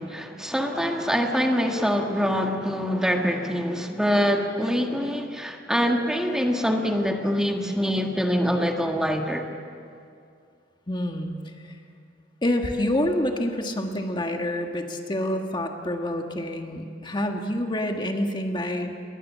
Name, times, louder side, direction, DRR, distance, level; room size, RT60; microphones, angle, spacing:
voice 1, 0.0-9.4, equal, 5° right, 2 dB, 1.6 m, -24 dB
voice 2, 10.9-11.8 12.4-18.9, left 1 dB, 25° left, 4 dB, 1.6 m, -27 dB
28.5 x 22.0 x 7.5 m, 2.4 s
head